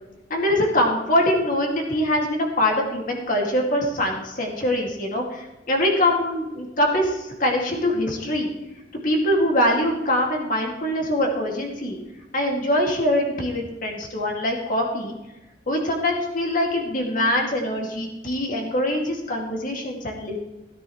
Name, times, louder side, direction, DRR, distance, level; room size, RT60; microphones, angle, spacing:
voice 1, 0.3-8.5 9.0-12.0 12.3-15.1 15.7-20.4, left 1 dB, 50° left, 1 dB, 2.2 m, -23 dB
16.5 x 9.9 x 3.1 m, 1.0 s
head